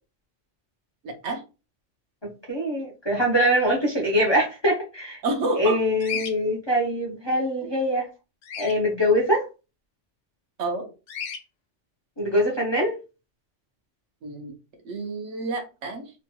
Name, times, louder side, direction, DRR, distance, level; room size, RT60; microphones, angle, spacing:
voice 1, 1.0-1.4 5.2-5.8 7.6-7.7 10.6-10.9 14.2-14.6 14.8-16.1, right 2 dB, 75° right, 1.2 m, -29 dB
voice 2, 2.2-5.2 5.6-8.1 8.6-9.5 12.2-12.9, equal, 25° left, 0.7 m, -23 dB
Bird vocalization bird call bird song, 6.0-6.3 8.4-8.8 11.1-11.4, left 7 dB, 90° left, 1.0 m, -32 dB
3.2 x 2.9 x 2.2 m
omnidirectional pair, 1.2 m